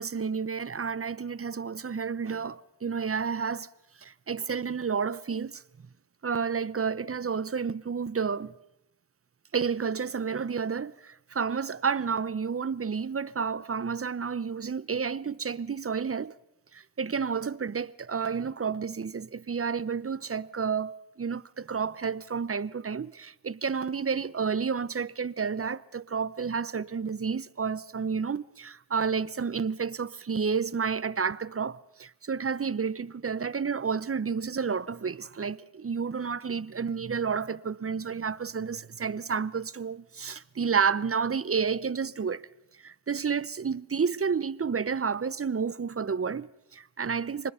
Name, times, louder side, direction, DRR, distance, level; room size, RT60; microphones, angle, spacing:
voice 1, 0.0-3.7 4.0-5.6 6.2-8.5 9.5-16.3 16.7-42.4 42.8-47.5, right 6 dB, 30° right, 0.7 m, -30 dB
26.0 x 20.0 x 5.6 m
cardioid pair, 70°, 48 cm